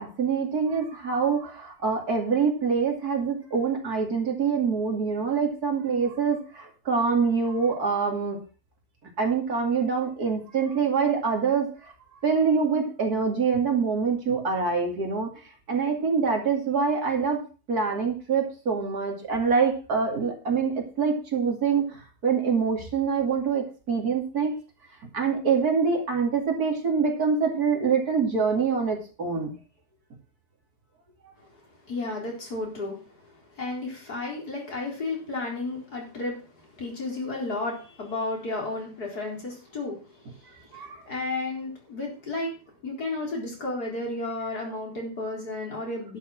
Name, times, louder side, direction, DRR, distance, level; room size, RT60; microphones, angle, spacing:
voice 1, 0.0-8.4 9.2-11.9 12.2-15.3 15.7-17.4 17.7-24.5 25.1-29.5 40.7-41.0, right 5 dB, 60° right, 2 dB, 3.0 m, -25 dB
voice 2, 31.9-33.0 33.6-36.4 36.8-40.0 40.6-42.5 42.8-46.2, left 2 dB, 65° left, -1 dB, 4.6 m, -32 dB
11.5 x 6.7 x 6.1 m, 0.37 s
omnidirectional pair, 1.8 m